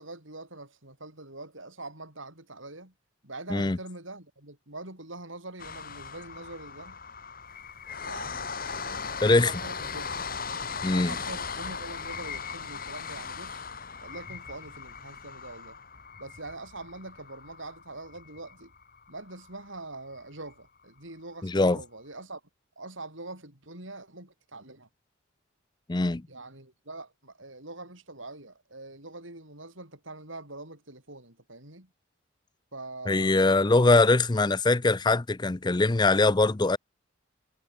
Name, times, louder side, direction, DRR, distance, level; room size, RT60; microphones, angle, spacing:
voice 1, 0.0-2.9 3.2-7.0 8.0-10.4 10.9-13.6 14.0-15.8 16.2-18.7 19.1-22.4 22.8-24.9 26.3-31.9 32.7-33.7, right 2 dB, 70° right, 7.3 m, -44 dB
sound 1, 5.6-19.7 20.1-20.2 20.5-20.6, left 5 dB, 45° left, 3.2 m, -38 dB
voice 2, 9.2-9.5 10.8-11.1 21.4-21.8 25.9-26.2 33.1-36.8, left 2 dB, 20° left, 0.5 m, -22 dB
head